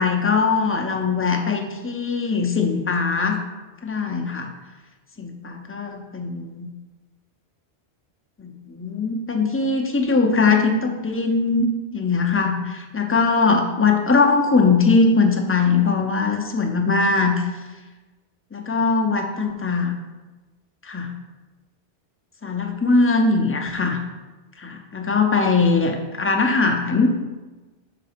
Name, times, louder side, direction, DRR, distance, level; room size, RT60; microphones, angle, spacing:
voice 1, 0.0-3.4 3.8-4.5 5.2-6.7 8.4-17.4 18.5-19.9 20.8-21.1 22.4-24.0 24.6-27.1, left 4 dB, 20° left, 3 dB, 0.3 m, -21 dB
5.8 x 3.9 x 5.0 m, 1.2 s
omnidirectional pair, 1.1 m